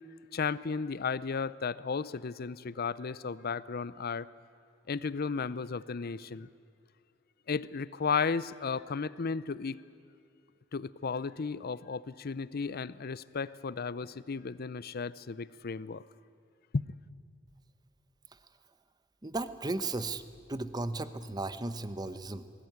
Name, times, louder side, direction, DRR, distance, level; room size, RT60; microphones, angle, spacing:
voice 1, 0.3-4.3 4.9-6.5 7.5-9.8 10.7-16.0 16.7-16.8, left 5 dB, 50° left, 18 dB, 0.6 m, -34 dB
voice 2, 19.2-20.2 20.5-22.5, right 2 dB, 20° right, 12 dB, 0.9 m, -35 dB
20.5 x 17.5 x 9.4 m, 2.5 s
head